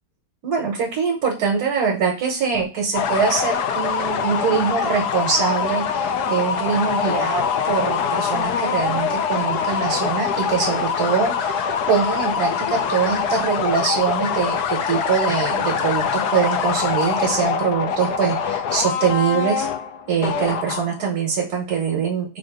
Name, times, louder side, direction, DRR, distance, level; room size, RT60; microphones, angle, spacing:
voice 1, 0.4-19.7 20.1-22.4, right 6 dB, 70° right, 1 dB, 1.5 m, -23 dB
sound 1, 2.9-21.1, left 6 dB, 75° left, 1.1 m, -24 dB
3.7 x 2.6 x 4.7 m, 0.31 s
omnidirectional pair, 1.8 m